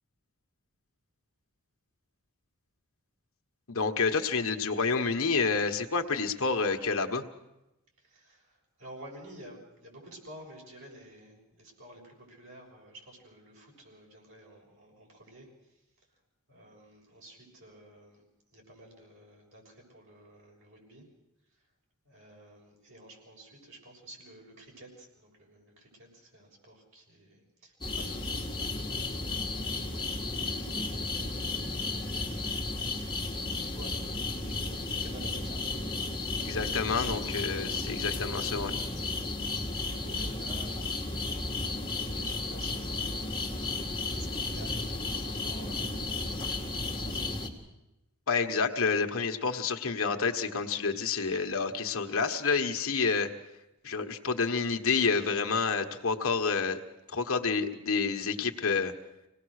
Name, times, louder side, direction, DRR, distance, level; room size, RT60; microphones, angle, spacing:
voice 1, 3.7-7.2 36.4-38.7 48.3-53.3 53.8-56.8 57.1-58.9, left 4 dB, 65° left, 5 dB, 1.4 m, -29 dB
voice 2, 8.0-15.8 16.5-18.2 18.5-21.1 22.1-28.9 29.2-30.6 30.9-32.5 33.0-35.6 39.8-43.5 43.9-47.3, right 1 dB, 60° right, -1 dB, 6.9 m, -52 dB
sound 1, 27.8-47.5, left 2 dB, 20° left, 2.5 m, -33 dB
26.0 x 19.0 x 6.6 m, 0.93 s
head